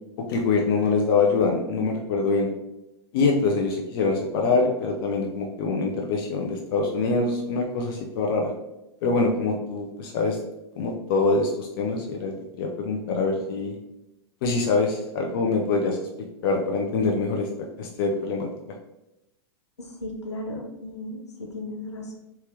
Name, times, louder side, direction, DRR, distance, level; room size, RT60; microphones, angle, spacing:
voice 1, 0.3-2.5 3.1-8.5 9.0-10.4 10.8-13.7 14.4-16.1 16.4-17.5 17.8-18.5, left 3 dB, 55° left, 1 dB, 0.6 m, -24 dB
voice 2, 19.8-22.2, left 1 dB, 80° left, 0 dB, 0.9 m, -35 dB
3.4 x 2.8 x 3.4 m, 0.89 s
figure-of-eight pair, 100°, 14 cm